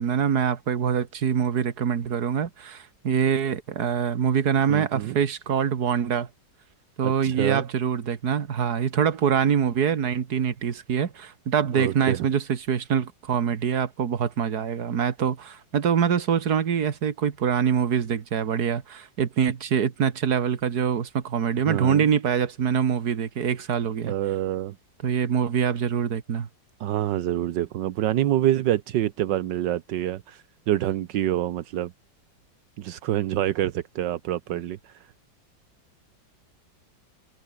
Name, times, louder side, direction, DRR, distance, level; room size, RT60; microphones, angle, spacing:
voice 1, 0.0-6.3 7.0-24.1 25.0-26.5, right 7 dB, 60° right, 2.0 m, -24 dB
voice 2, 4.7-5.2 7.0-7.7 11.7-12.3 21.7-22.1 24.0-24.7 26.8-31.9 32.8-35.1, right 13 dB, 75° right, 1.5 m, -26 dB
omnidirectional pair, 2.0 m